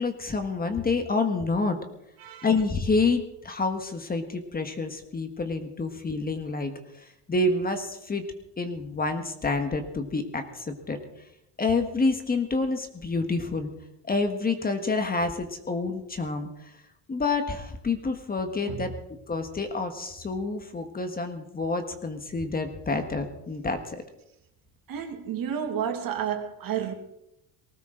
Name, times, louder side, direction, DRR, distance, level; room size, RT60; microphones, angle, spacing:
voice 1, 0.0-1.8 2.4-6.7 7.0-8.3 8.6-11.0 11.6-13.7 14.0-16.7 17.1-18.9 19.3-24.0, left 3 dB, 20° left, 1.4 m, -28 dB
voice 2, 2.2-2.5 18.7-19.0 24.9-26.9, right 8 dB, 55° right, 2.5 m, -31 dB
19.5 x 18.0 x 3.8 m
cardioid pair, 145°, 42 cm